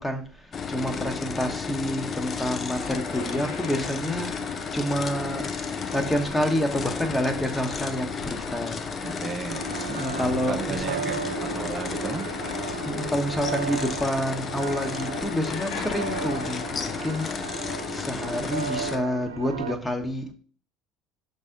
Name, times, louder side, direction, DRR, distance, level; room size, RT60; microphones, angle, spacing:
voice 1, 0.0-5.5 5.9-9.3 9.9-11.1 12.8-20.3, equal, 15° left, 1.3 m, -29 dB
sound 1, 0.5-19.0, left 5 dB, 40° left, 0.7 m, -33 dB
sound 2, 2.6-17.1, left 3 dB, 75° left, 1.1 m, -40 dB
voice 2, 9.0-9.7 10.5-12.3, right 6 dB, 40° right, 0.6 m, -34 dB
sound 3, 9.5-19.8, right 8 dB, 85° right, 0.4 m, -35 dB
6.1 x 4.1 x 3.9 m
hypercardioid pair, 65°, 0 cm